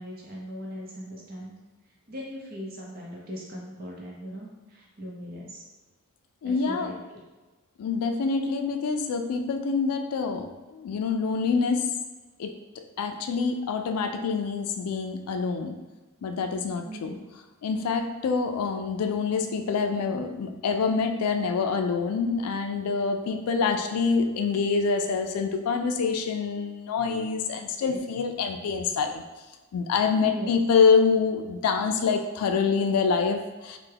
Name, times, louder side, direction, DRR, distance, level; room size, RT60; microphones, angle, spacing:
voice 1, 0.0-1.5 2.1-5.6 6.4-7.2 16.8-17.2 27.9-28.0 30.1-30.5, equal, 45° right, -3 dB, 0.7 m, -39 dB
voice 2, 6.4-7.0 7.8-11.9 12.4-12.5 13.0-15.8 16.2-17.2 17.6-29.2 29.7-33.8, left 5 dB, 85° left, 6 dB, 0.3 m, -26 dB
3.3 x 2.1 x 3.3 m, 1.2 s
head